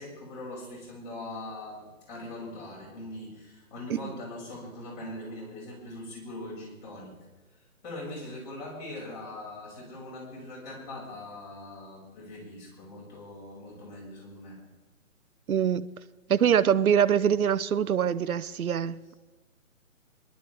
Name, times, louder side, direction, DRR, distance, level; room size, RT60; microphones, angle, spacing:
voice 1, 0.0-7.2 7.8-14.6, left 1 dB, 30° left, 6.2 m, -41 dB
voice 2, 15.5-15.9 16.3-19.1, right 8 dB, 85° right, 0.8 m, -24 dB
25.0 x 11.5 x 3.5 m
hypercardioid pair, 160°, 42 cm